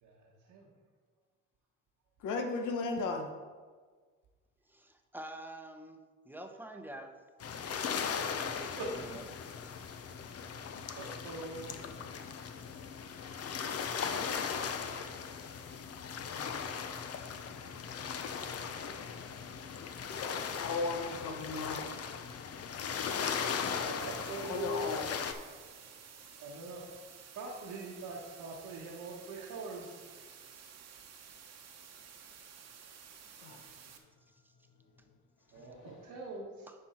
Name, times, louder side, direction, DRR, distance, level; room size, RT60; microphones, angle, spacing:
voice 1, 0.0-0.7 8.8-9.1 11.0-11.8 19.6-19.8 23.3-24.9 26.4-26.9 27.3-30.0 30.4-30.5 35.5-36.7, right 2 dB, 85° right, -4 dB, 1.3 m, -43 dB
voice 2, 2.2-3.3 16.3-16.5 19.9-21.8 24.5-25.1 33.4-33.6 35.6-35.7, left 3 dB, 80° left, 4 dB, 1.0 m, -36 dB
voice 3, 4.7-7.2 8.4-9.2 9.6-9.7 36.7-36.8, right 1 dB, 5° right, 5 dB, 0.9 m, -47 dB
sound 1, 7.4-25.3, left 6 dB, 55° left, 0.7 m, -38 dB
sound 2, 24.0-34.0, right 7 dB, 60° right, 1.0 m, -53 dB
10.5 x 4.4 x 4.4 m, 1.5 s
cardioid pair, 90°, 30 cm